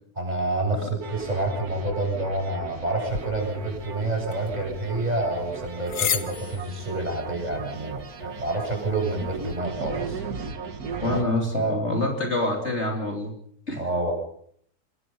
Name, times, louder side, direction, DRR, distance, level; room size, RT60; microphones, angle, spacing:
voice 1, 0.2-10.2 11.1-11.2 11.5-11.8 13.8-14.1, right 2 dB, 25° right, 2 dB, 7.8 m, -28 dB
sound 1, 1.0-11.2, right 5 dB, 70° right, 2.1 m, -37 dB
sound 2, 3.1-9.6, left 8 dB, 85° left, 1.8 m, -36 dB
voice 2, 11.0-13.3 13.7-13.9, left 2 dB, 45° left, 1 dB, 3.5 m, -26 dB
25.5 x 22.5 x 5.5 m, 0.63 s
omnidirectional pair, 1.6 m